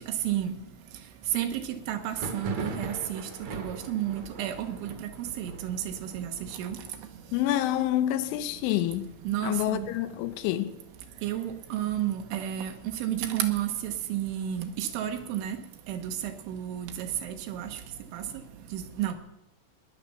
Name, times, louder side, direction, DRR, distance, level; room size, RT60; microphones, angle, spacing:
voice 1, 1.9-3.2 3.5-4.9 5.4-5.8 6.1-6.3 6.6-6.8 9.3-9.9 11.2-12.7 13.0-15.6 15.9-16.1 16.5-17.7 18.1-18.2 18.7-19.1, right 11 dB, 75° right, 3.5 m, -31 dB
Thunder, 2.0-11.5 11.8-12.5 12.7-13.7 14.1-15.8, right 2 dB, 55° right, 1.9 m, -43 dB
voice 2, 7.3-9.1 9.4-10.7, left 13 dB, 80° left, 3.1 m, -27 dB
19.5 x 10.5 x 6.9 m
omnidirectional pair, 5.7 m